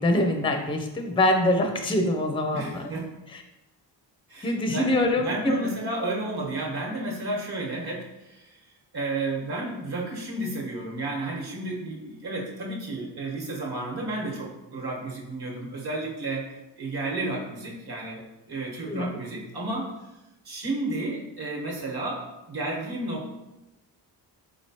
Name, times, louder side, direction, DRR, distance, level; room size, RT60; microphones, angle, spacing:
voice 1, 0.0-2.8 4.4-5.7 18.9-19.2, left 1 dB, 10° left, 4 dB, 0.5 m, -24 dB
voice 2, 2.5-3.1 4.3-8.5 8.9-16.5 16.8-19.9 20.4-23.3, right 2 dB, 50° right, -2 dB, 1.3 m, -32 dB
3.9 x 3.0 x 2.9 m, 0.94 s
supercardioid pair, 55°, 49 cm